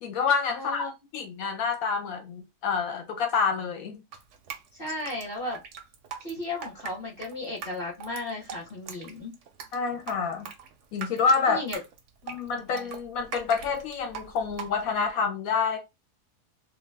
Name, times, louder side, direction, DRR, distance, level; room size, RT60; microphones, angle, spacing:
voice 1, 0.0-4.0 9.7-10.5 10.9-11.6 12.3-15.8, left 5 dB, 70° left, 1.0 m, -27 dB
voice 2, 0.5-0.9 4.7-5.6 6.2-9.4 11.5-11.8 12.5-12.8, left 2 dB, 45° left, 0.9 m, -35 dB
Drip, 4.1-15.1, right 6 dB, 65° right, 0.8 m, -41 dB
2.5 x 2.2 x 3.2 m
omnidirectional pair, 1.7 m